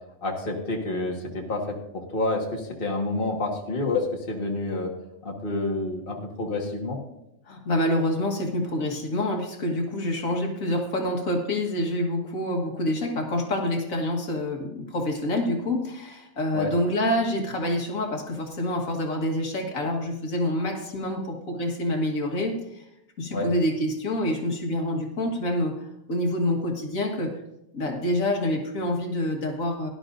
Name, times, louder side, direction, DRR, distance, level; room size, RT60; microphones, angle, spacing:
voice 1, 0.2-1.7 2.1-4.9 5.2-7.0 16.5-16.7 23.3-23.5, left 2 dB, 40° left, 0 dB, 1.8 m, -28 dB
voice 2, 7.5-22.9 23.2-27.4 27.7-29.9, left 1 dB, 70° left, 2 dB, 2.0 m, -27 dB
18.0 x 11.5 x 2.6 m, 0.85 s
omnidirectional pair, 1.5 m